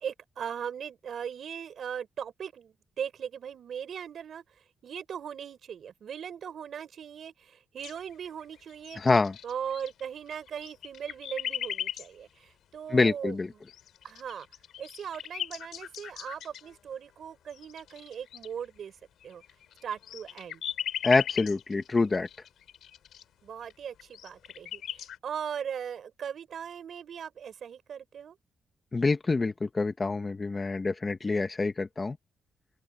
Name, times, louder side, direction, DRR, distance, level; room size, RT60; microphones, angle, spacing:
voice 1, 0.0-4.4 4.8-9.0 9.4-13.4 14.0-14.5 14.8-18.9 19.2-19.4 19.8-20.6 23.4-28.4, right 8 dB, 60° right, 4.5 m, -39 dB
sound 1, 7.8-8.4 8.7-10.0 10.3-12.1 13.7-16.7 17.5-18.5 19.2-23.2 23.7-23.8 24.0-25.2, left 10 dB, 85° left, 3.1 m, -38 dB
voice 2, 9.0-9.4 12.9-13.5 21.0-22.3 28.9-32.2, left 3 dB, 25° left, 1.3 m, -26 dB
open air
cardioid pair, 140°, 0 cm